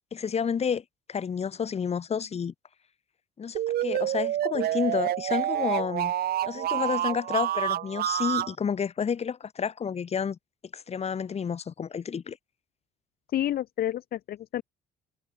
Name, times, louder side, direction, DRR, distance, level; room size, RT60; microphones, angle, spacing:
voice 1, 0.1-2.5 3.4-6.1 6.5-10.4 10.7-12.4, left 7 dB, 40° left, 6.7 m, -30 dB
sound 1, 3.5-8.5, right 13 dB, 65° right, 6.6 m, -28 dB
voice 2, 13.3-14.6, left 12 dB, 65° left, 4.6 m, -29 dB
cardioid pair, 110°, 17 cm